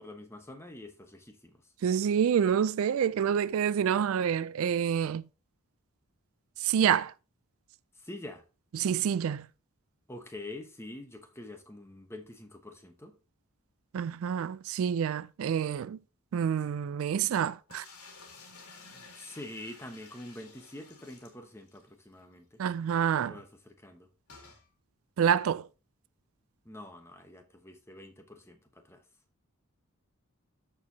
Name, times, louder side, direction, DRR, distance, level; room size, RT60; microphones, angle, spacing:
voice 1, 0.0-1.6 7.9-8.4 10.1-13.2 18.9-22.6 23.3-24.1 26.6-29.0, left 1 dB, 10° left, 0.9 m, -46 dB
voice 2, 1.8-5.2 6.6-7.1 8.7-9.5 13.9-16.0 16.3-17.8 22.6-23.4 25.2-25.7, right 8 dB, 70° right, 0.3 m, -27 dB
sound 1, 17.7-21.9 22.2-22.3 22.5-22.6 24.3-24.6, left 4 dB, 85° left, 2.3 m, -52 dB
13.5 x 4.6 x 2.8 m
head